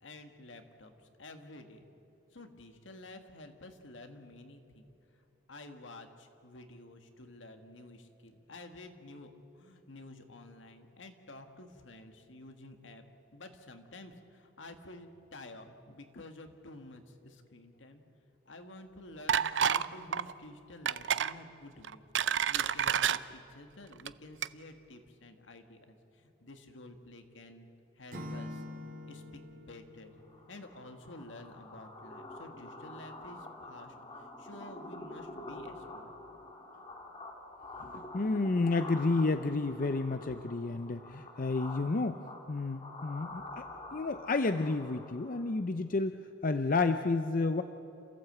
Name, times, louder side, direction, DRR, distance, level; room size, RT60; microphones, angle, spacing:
voice 1, 0.0-1.9 2.3-4.9 5.5-13.0 13.3-18.0 18.5-27.7 28.0-28.6 29.1-30.2 30.5-34.0 34.4-36.1, left 2 dB, 75° left, 6 dB, 1.7 m, -51 dB
sound 1, 19.3-19.9 20.1-20.3 20.9-21.3 21.8-23.2 23.9-24.1 24.4-24.5, right 8 dB, 70° right, 0.5 m, -29 dB
Acoustic guitar / Strum, 28.1-31.2, left 1 dB, 45° right, 2.1 m, -45 dB
sound 2, 30.2-45.6, left 2 dB, 30° left, 2.1 m, -47 dB
voice 2, 37.8-42.2 42.5-47.6, left 3 dB, 45° left, 9 dB, 0.5 m, -31 dB
28.5 x 15.0 x 8.0 m, 2.9 s
head